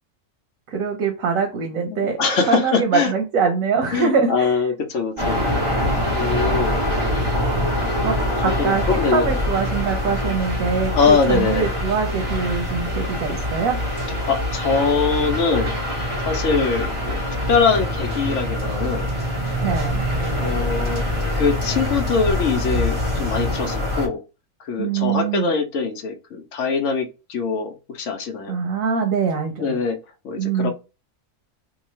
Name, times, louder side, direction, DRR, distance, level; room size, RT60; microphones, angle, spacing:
voice 1, 0.7-2.2 2.5-4.6 8.0-13.8 19.6-20.0 24.8-25.5 28.5-29.8 30.4-30.7, right 5 dB, 85° right, 4 dB, 1.1 m, -23 dB
voice 2, 1.9-3.1 3.9-5.7 6.1-6.8 8.4-9.3 10.9-11.8 14.3-15.7 16.2-17.2 17.5-19.1 20.4-24.2 24.6-28.6 29.6-30.0 30.2-30.7, left 5 dB, 70° left, 6 dB, 0.9 m, -23 dB
sound 1, 5.2-24.1, left 1 dB, 25° right, 1.0 m, -24 dB
3.0 x 2.3 x 4.2 m, 0.30 s
omnidirectional pair, 1.4 m